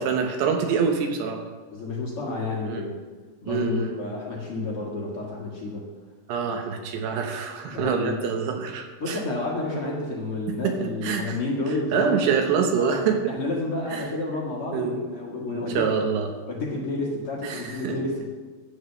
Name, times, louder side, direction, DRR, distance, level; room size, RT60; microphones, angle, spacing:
voice 1, 0.0-1.4 2.7-2.8 3.5-4.0 6.3-9.2 10.5-11.4 11.9-13.4 13.9-14.1 14.7-15.0 15.4-16.3 17.4-18.0, right 6 dB, 75° right, 4 dB, 2.8 m, -26 dB
voice 2, 1.7-3.0 3.4-5.8 7.7-8.2 9.0-12.2 12.8-13.0 13.3-15.9 16.5-18.3, left 2 dB, 60° left, -4 dB, 1.4 m, -30 dB
11.0 x 8.0 x 6.8 m, 1.3 s
omnidirectional pair, 5.5 m